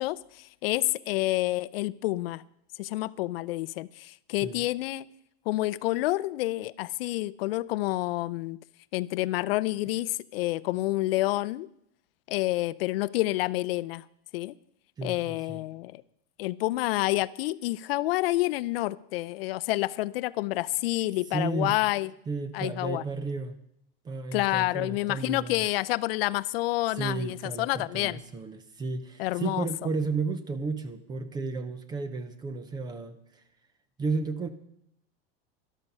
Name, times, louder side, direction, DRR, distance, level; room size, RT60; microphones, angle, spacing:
voice 1, 0.0-2.4 2.8-5.1 5.5-8.6 8.9-11.7 12.3-14.0 14.3-14.6 15.0-16.0 16.4-22.1 22.5-23.0 24.3-28.2 29.2-29.7, left 18 dB, 65° left, 16 dB, 0.5 m, -28 dB
voice 2, 15.0-15.6 21.3-21.8 22.3-23.6 24.0-25.7 26.9-33.4 34.0-34.5, right 3 dB, 15° right, 12 dB, 0.6 m, -33 dB
12.5 x 12.0 x 5.4 m, 0.75 s
supercardioid pair, 170°, 31 cm